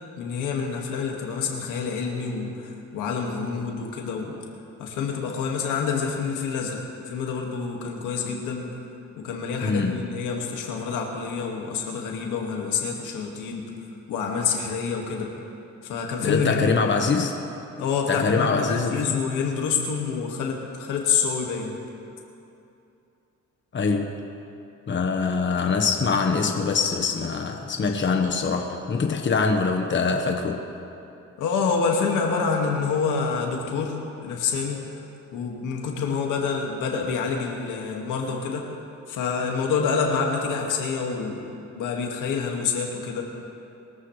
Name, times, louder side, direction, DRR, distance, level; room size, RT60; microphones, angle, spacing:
voice 1, 0.2-4.3 4.8-8.7 9.2-13.7 14.1-15.3 15.8-16.9 17.8-21.8 31.4-35.1 35.3-38.7 39.1-41.4 41.8-43.2, left 5 dB, 90° left, 0 dB, 2.0 m, -27 dB
voice 2, 9.6-10.1 16.2-17.4 18.1-19.2 23.7-24.1 24.9-30.6, left 4 dB, 40° left, 3 dB, 1.3 m, -24 dB
22.0 x 14.0 x 3.3 m, 2.7 s
cardioid pair, 90°, 30 cm